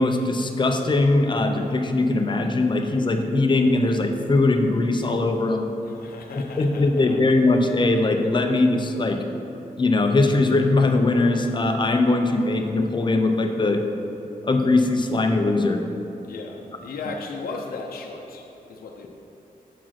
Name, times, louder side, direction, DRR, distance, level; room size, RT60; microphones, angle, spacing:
voice 1, 0.0-5.7 6.3-9.2 9.8-13.8 14.4-15.8, left 2 dB, 30° left, 4 dB, 0.6 m, -21 dB
voice 2, 5.8-7.2 16.2-19.1, left 3 dB, 85° left, 1 dB, 0.7 m, -36 dB
7.2 x 4.9 x 5.8 m, 2.9 s
wide cardioid pair, 120°, 15 cm